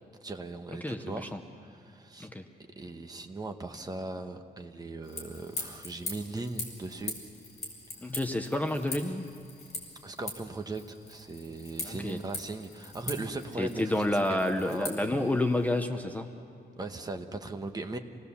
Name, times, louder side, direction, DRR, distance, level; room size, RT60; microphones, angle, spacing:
voice 1, 0.2-1.3 1.6-2.3 2.8-7.1 8.0-8.2 10.0-15.3 16.8-18.0, right 2 dB, 20° right, 6 dB, 1.0 m, -39 dB
voice 2, 0.8-1.4 2.2-2.4 8.0-9.3 11.8-12.2 13.6-16.3, left 1 dB, 10° left, 5 dB, 0.7 m, -29 dB
sound 1, 5.0-15.8, left 3 dB, 40° left, 4.3 m, -42 dB
27.0 x 19.5 x 7.1 m, 2.3 s
wide cardioid pair, 170°, 17 cm